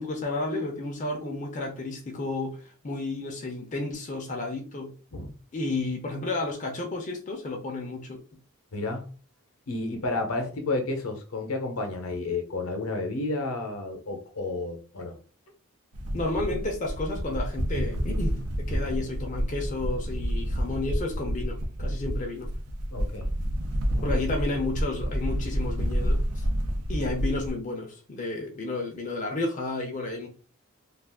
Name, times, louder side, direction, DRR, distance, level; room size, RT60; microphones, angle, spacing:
voice 1, 0.0-4.9 5.5-8.2 16.1-22.5 24.0-26.5 26.9-30.3, left 2 dB, 35° left, 1 dB, 0.5 m, -32 dB
voice 2, 8.7-9.1 9.7-15.2 22.9-23.3 23.9-24.1, left 2 dB, 70° left, 4 dB, 0.7 m, -31 dB
sound 1, 15.9-27.5, equal, 80° right, 0.6 m, -29 dB
2.4 x 2.4 x 3.5 m, 0.39 s
head